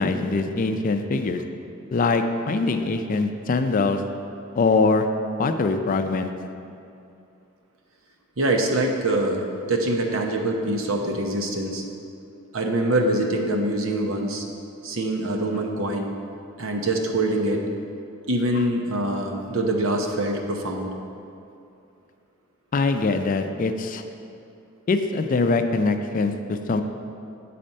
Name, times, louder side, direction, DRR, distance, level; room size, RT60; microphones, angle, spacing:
voice 1, 0.0-1.4 1.9-4.0 4.5-5.1 5.4-6.3 22.7-24.0 24.9-26.8, left 3 dB, 40° left, 7 dB, 0.4 m, -23 dB
voice 2, 8.4-11.8 12.5-14.4 14.8-16.1 16.6-17.6 18.3-20.9, right 1 dB, 80° right, 2 dB, 0.8 m, -24 dB
8.8 x 4.2 x 5.3 m, 2.6 s
head